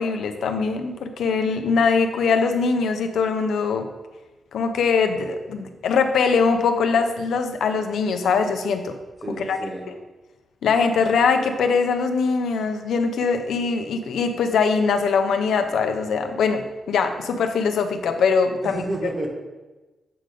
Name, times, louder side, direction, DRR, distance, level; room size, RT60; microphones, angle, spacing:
voice 1, 0.0-3.9 4.5-9.0 9.5-9.6 10.6-18.8, left 5 dB, 85° left, 6 dB, 0.6 m, -22 dB
voice 2, 9.2-9.9 18.6-19.3, right 2 dB, 25° right, 0 dB, 1.2 m, -30 dB
7.7 x 3.8 x 5.0 m, 1.2 s
wide cardioid pair, 165°, 0 cm